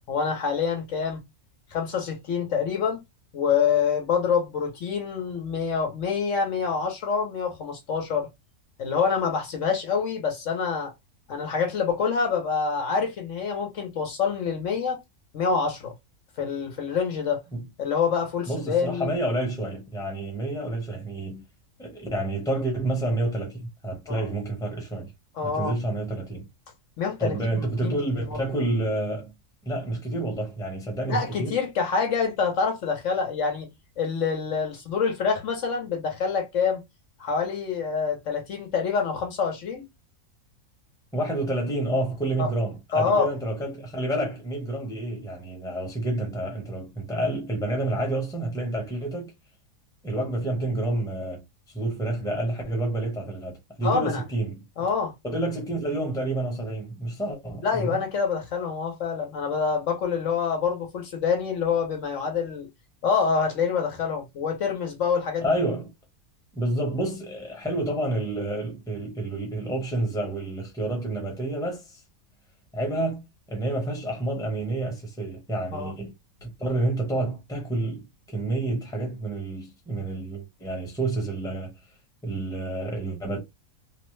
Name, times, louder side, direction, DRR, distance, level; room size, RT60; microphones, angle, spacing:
voice 1, 0.1-1.2 1.7-3.0 3.3-8.3 8.8-10.9 11.3-15.0 15.3-15.9 16.4-17.4 17.8-19.1 24.1-24.3 25.3-25.8 27.0-27.9 28.3-28.4 31.1-33.7 34.0-36.8 37.2-39.8 42.4-42.5 42.9-43.3 53.8-54.2 54.8-55.1 57.6-62.7 63.0-65.5 75.7-75.9, left 6 dB, 65° left, 1.0 m, -26 dB
voice 2, 18.5-21.4 21.8-25.1 25.4-26.5 27.2-29.3 29.6-31.5 41.1-49.3 50.0-51.4 51.7-54.6 55.2-58.0 65.4-65.9 66.5-72.0 72.7-73.2 73.5-76.1 76.4-81.7 82.2-83.4, right 1 dB, 5° left, 0.8 m, -29 dB
3.0 x 2.0 x 3.1 m
omnidirectional pair, 1.5 m